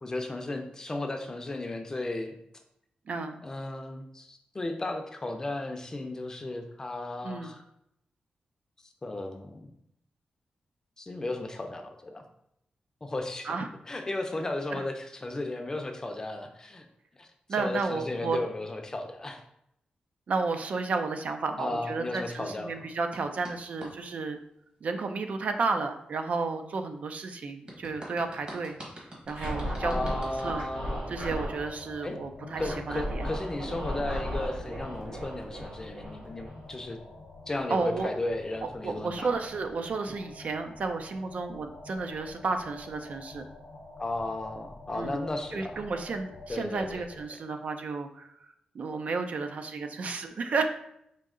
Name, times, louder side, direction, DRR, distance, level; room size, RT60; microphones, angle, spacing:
voice 1, 0.0-2.4 3.4-7.6 9.0-9.7 11.0-12.2 13.0-13.5 13.9-16.8 17.2-17.3 17.6-19.4 21.6-22.8 29.8-31.2 32.0-32.2 32.6-37.0 37.5-39.3 44.0-45.8 46.5-47.0, left 2 dB, 20° left, 4 dB, 0.5 m, -35 dB
voice 2, 3.1-3.4 7.2-7.5 13.4-13.7 14.7-14.8 17.5-18.4 20.3-24.4 24.8-28.8 29.3-30.6 31.1-33.2 37.7-38.1 38.8-43.4 44.9-45.2 45.5-50.7, right 4 dB, 55° right, 6 dB, 0.4 m, -32 dB
sound 1, 23.1-23.9 27.7-30.6, right 1 dB, 40° right, 1.3 m, -45 dB
Scratching (performance technique), 29.3-31.6 32.6-36.9, equal, 85° right, 1.4 m, -35 dB
sound 2, 31.2-47.2, left 2 dB, 85° left, 0.7 m, -48 dB
5.1 x 2.7 x 3.7 m, 0.76 s
wide cardioid pair, 150°, 3 cm